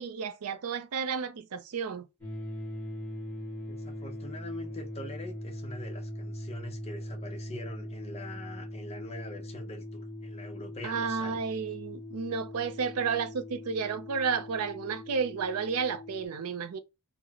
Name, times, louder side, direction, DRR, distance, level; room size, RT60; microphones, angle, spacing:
voice 1, 0.0-2.1 10.8-16.8, right 6 dB, 80° right, 0.5 m, -32 dB
sound 1, 2.2-16.3, left 1 dB, 10° left, 1.6 m, -41 dB
voice 2, 3.7-11.4, left 1 dB, 30° left, 0.7 m, -44 dB
3.9 x 2.0 x 2.9 m
head